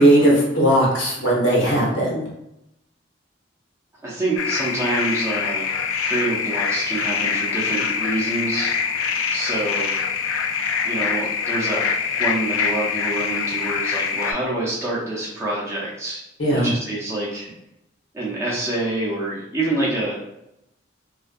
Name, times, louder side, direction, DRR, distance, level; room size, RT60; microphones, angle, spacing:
voice 1, 0.0-2.2 16.4-16.7, right 1 dB, 65° left, -3 dB, 0.8 m, -17 dB
voice 2, 4.0-5.7 6.0-8.7 9.3-10.3 10.8-16.2 16.5-17.5 18.1-20.1, right 2 dB, 15° right, -6 dB, 0.5 m, -26 dB
sound 1, 4.4-14.3, left 6 dB, 85° left, 0.3 m, -24 dB
2.4 x 2.2 x 2.5 m, 0.83 s
head